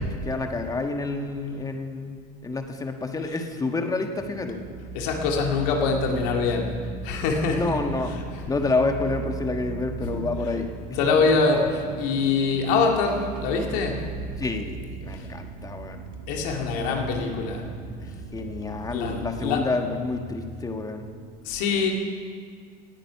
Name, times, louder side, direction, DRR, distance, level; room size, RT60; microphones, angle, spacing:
voice 1, 0.0-4.6 7.5-8.1 8.5-11.3 14.4-16.0 18.3-21.0, left 3 dB, 15° left, 5 dB, 1.4 m, -29 dB
sound 1, 4.2-19.7, right 4 dB, 35° right, 2.0 m, -38 dB
voice 2, 4.9-8.5 10.0-10.5 10.9-14.1 15.1-15.3 16.3-17.7 18.9-19.8 21.4-21.9, left 4 dB, 70° left, 2 dB, 2.1 m, -25 dB
18.5 x 9.0 x 5.7 m, 2.1 s
supercardioid pair, 100°, 21 cm